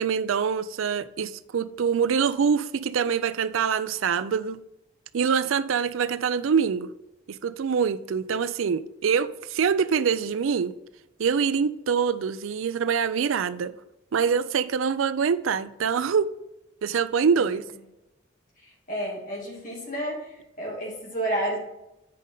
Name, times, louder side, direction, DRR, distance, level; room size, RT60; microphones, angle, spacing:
voice 1, 0.0-4.6 5.1-6.9 7.3-10.7 11.2-13.7 14.1-16.3 16.8-17.6, right 6 dB, 85° right, 0.4 m, -25 dB
voice 2, 18.9-20.2 20.6-21.6, right 1 dB, 40° left, 2.4 m, -30 dB
8.3 x 5.2 x 3.8 m
head